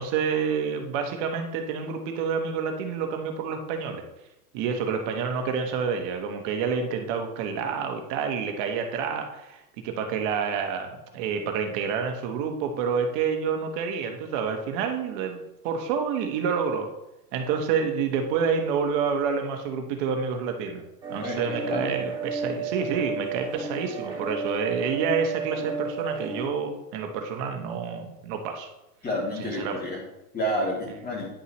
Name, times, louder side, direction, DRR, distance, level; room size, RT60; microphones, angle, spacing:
voice 1, 0.0-4.0 4.5-16.9 17.3-20.8 21.1-28.7 29.4-29.8, right 6 dB, 50° right, 5 dB, 1.4 m, -28 dB
sound 1, 21.0-26.5, right 4 dB, 10° right, 2.6 m, -32 dB
voice 2, 21.2-21.9 29.0-30.0 30.3-31.3, equal, 20° left, -2 dB, 2.8 m, -30 dB
10.0 x 5.5 x 3.1 m, 0.92 s
hypercardioid pair, 105°, 46 cm